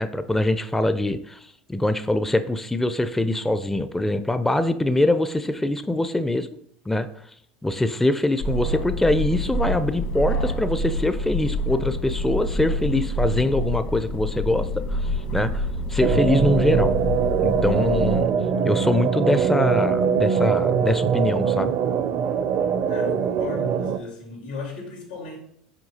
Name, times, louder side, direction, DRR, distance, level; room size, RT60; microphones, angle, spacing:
voice 1, 0.0-6.5 6.9-7.1 7.6-16.9 17.4-18.3 18.6-21.7, left 1 dB, 5° left, 11 dB, 0.4 m, -23 dB
sound 1, 8.4-18.2, left 1 dB, 55° left, 1.2 m, -27 dB
sound 2, 16.0-24.0, right 7 dB, 45° right, 0.5 m, -22 dB
voice 2, 22.8-25.4, left 4 dB, 85° left, 0 dB, 2.3 m, -35 dB
7.7 x 4.6 x 2.8 m, 0.67 s
hypercardioid pair, 80°, 4 cm